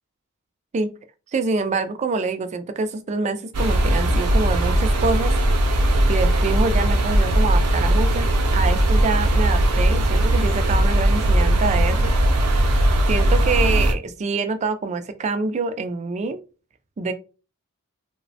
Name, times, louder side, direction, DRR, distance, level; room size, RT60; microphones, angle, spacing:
voice 1, 1.3-5.4 6.1-12.1 13.1-16.4 17.0-17.1, right 4 dB, 30° right, 10 dB, 0.3 m, -25 dB
sound 1, 3.5-13.9, right 1 dB, 85° right, 0.5 m, -19 dB
2.9 x 2.0 x 2.7 m, 0.33 s
head